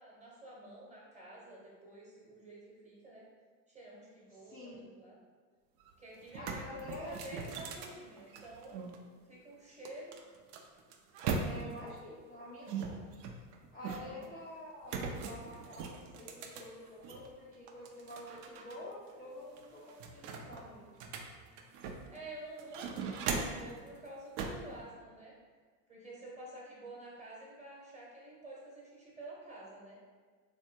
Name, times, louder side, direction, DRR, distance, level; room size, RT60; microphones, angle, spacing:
voice 1, 0.0-3.2 3.7-5.2 6.0-8.8 9.2-10.1 13.7-14.1 22.1-25.4 25.9-30.0, right 2 dB, 15° right, -5 dB, 1.0 m, -50 dB
voice 2, 4.4-4.8 6.3-7.2 11.4-13.0 13.7-20.9, left 1 dB, 20° left, -7 dB, 0.5 m, -48 dB
sound 1, 5.8-5.9 6.2-9.0 9.9-11.9 12.7-14.3 14.9-17.3 17.7-18.8 19.1-19.2 19.6-22.2 22.6-23.7 24.4-24.7, right 5 dB, 55° right, 0.5 m, -40 dB
3.3 x 2.7 x 2.7 m, 1.5 s
hypercardioid pair, 95°, 47 cm